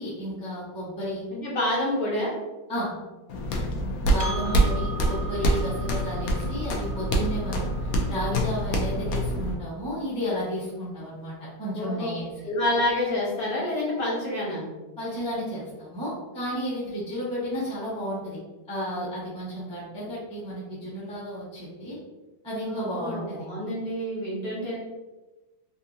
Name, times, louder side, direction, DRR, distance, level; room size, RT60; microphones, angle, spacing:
voice 1, 0.0-1.3 2.7-2.9 4.0-12.3 15.0-18.4 18.7-22.0 22.4-23.5, equal, 5° left, -8 dB, 0.6 m, -33 dB
voice 2, 1.3-2.3 4.2-4.6 11.7-12.1 12.4-14.6 22.7-24.8, left 1 dB, 55° left, -6 dB, 1.4 m, -28 dB
sound 1, 3.3-9.6, right 1 dB, 90° left, 0.7 m, -26 dB
Percussion, 4.2-9.0, right 4 dB, 85° right, 1.3 m, -41 dB
3.6 x 2.7 x 2.6 m, 1.1 s
omnidirectional pair, 2.1 m